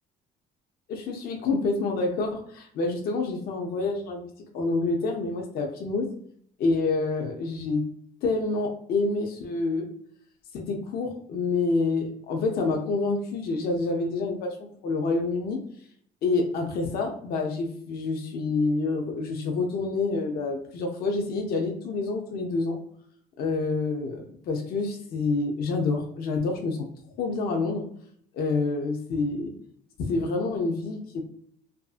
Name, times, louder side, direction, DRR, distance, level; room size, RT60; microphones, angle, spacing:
voice 1, 0.9-6.1 6.6-7.8 8.2-9.9 10.5-14.6 14.8-15.6 16.2-22.8 23.4-26.9 27.2-27.9 28.3-29.5 30.1-31.2, left 3 dB, 65° left, 2 dB, 0.5 m, -27 dB
2.5 x 2.4 x 2.3 m, 0.63 s
cardioid pair, 110°, 17 cm